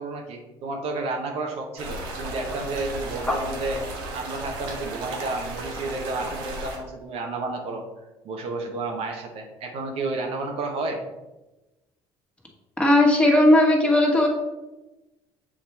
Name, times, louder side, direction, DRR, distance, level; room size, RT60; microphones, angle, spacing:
voice 1, 0.0-3.8 4.1-7.8 8.2-11.0, right 3 dB, 65° right, 2 dB, 1.1 m, -31 dB
sound 1, 1.8-6.8, right 2 dB, 85° right, 1.2 m, -35 dB
voice 2, 12.8-14.3, left 1 dB, 10° left, -2 dB, 1.7 m, -17 dB
7.4 x 3.0 x 4.3 m, 1.1 s
supercardioid pair, 75°, 11 cm